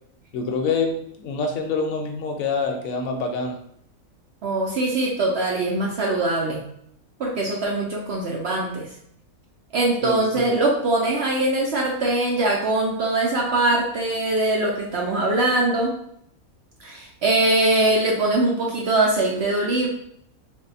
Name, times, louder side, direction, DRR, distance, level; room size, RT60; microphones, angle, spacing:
voice 1, 0.3-3.6 10.0-10.2, left 4 dB, 70° left, 4 dB, 1.0 m, -26 dB
voice 2, 4.4-6.6 7.2-8.9 9.7-15.9 16.8-19.9, right 2 dB, 60° right, -2 dB, 0.7 m, -22 dB
3.4 x 2.2 x 4.0 m, 0.70 s
omnidirectional pair, 1.5 m